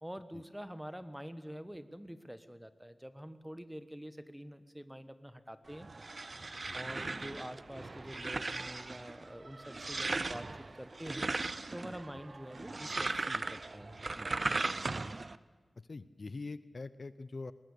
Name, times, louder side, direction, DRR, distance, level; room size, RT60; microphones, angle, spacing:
voice 1, 0.0-5.9 6.7-11.3 11.7-14.3, equal, 5° right, 12 dB, 1.2 m, -46 dB
sound 1, 5.7-15.3, right 3 dB, 45° right, 0.6 m, -38 dB
voice 2, 15.9-17.5, left 3 dB, 55° left, 15 dB, 0.7 m, -43 dB
20.5 x 19.0 x 8.4 m, 1.5 s
wide cardioid pair, 85°, 0 cm